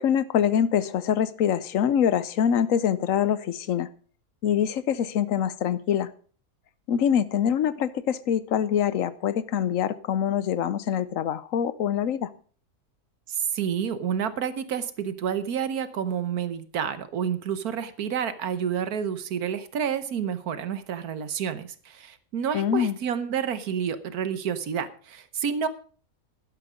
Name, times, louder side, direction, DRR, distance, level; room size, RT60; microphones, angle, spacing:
voice 1, 0.0-3.9 4.4-6.1 6.9-12.3 22.5-22.9, left 9 dB, 65° left, 16 dB, 1.1 m, -24 dB
voice 2, 13.3-25.7, right 8 dB, 75° right, 13 dB, 1.5 m, -29 dB
12.0 x 11.5 x 5.0 m, 0.41 s
omnidirectional pair, 1.6 m